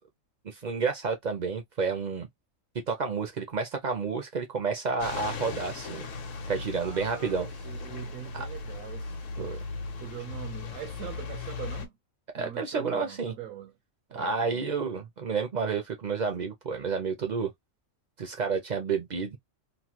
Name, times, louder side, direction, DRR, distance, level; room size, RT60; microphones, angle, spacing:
voice 1, 0.4-2.3 2.7-6.1 6.5-7.5 8.3-8.5 9.4-9.6 12.3-13.3 14.1-17.5 18.2-19.4, right 5 dB, 55° right, 0.5 m, -30 dB
sound 1, 5.0-11.9, left 4 dB, 65° left, 1.1 m, -38 dB
voice 2, 6.8-9.5 9.9-11.9 12.3-13.8 14.1-14.7, right 10 dB, 85° right, 1.0 m, -42 dB
3.1 x 2.2 x 2.9 m
omnidirectional pair, 1.5 m